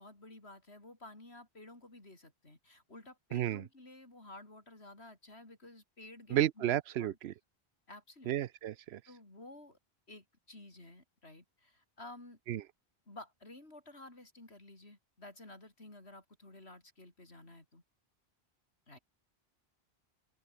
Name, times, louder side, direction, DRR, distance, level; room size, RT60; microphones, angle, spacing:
voice 1, 0.0-7.2 7.9-8.3 9.1-9.8 10.1-12.4 13.1-17.8 18.9-19.0, left 2 dB, 80° left, 5.6 m, -53 dB
voice 2, 3.3-3.6 6.3-7.3 8.3-9.0 12.5-12.6, right 12 dB, 85° right, 0.9 m, -32 dB
omnidirectional pair, 1.1 m